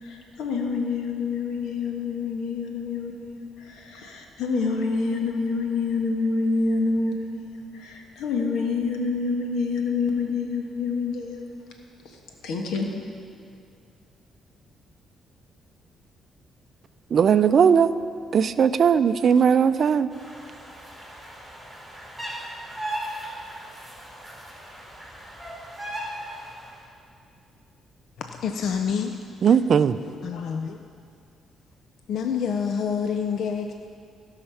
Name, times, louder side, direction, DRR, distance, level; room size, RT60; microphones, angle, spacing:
voice 1, 0.0-11.5 12.0-12.2 12.4-12.9, left 4 dB, 90° left, 1.5 m, -27 dB
voice 2, 17.1-17.9 18.3-20.1 29.4-30.0, right 7 dB, 55° right, 0.4 m, -18 dB
sound 1, 20.1-26.7, right 1 dB, ahead, 3.2 m, -37 dB
voice 3, 28.2-29.2 29.4-29.5 30.2-30.8 32.1-33.7, left 7 dB, 70° left, 0.5 m, -27 dB
16.5 x 5.7 x 5.7 m
cardioid pair, 90°, 0 cm